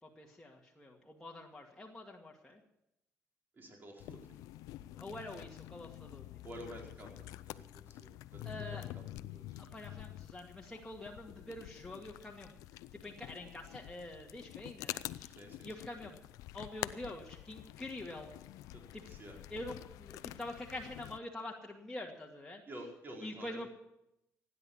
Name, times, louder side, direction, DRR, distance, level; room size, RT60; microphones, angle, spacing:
voice 1, 0.0-2.6 5.0-6.4 8.4-8.9 9.5-15.4 15.6-16.2 16.5-18.4 18.9-19.0 19.5-22.6 23.2-23.7, left 1 dB, 10° left, -2 dB, 2.2 m, -46 dB
voice 2, 3.5-4.4 4.6-5.1 6.4-9.6 15.3-15.7 18.7-18.8 19.1-19.4 22.7-23.6, right 1 dB, 35° right, -1 dB, 4.7 m, -51 dB
sound 1, 4.0-21.2, left 16 dB, 85° left, 0.5 m, -48 dB
16.5 x 10.0 x 7.2 m, 0.83 s
cardioid pair, 85°, 6 cm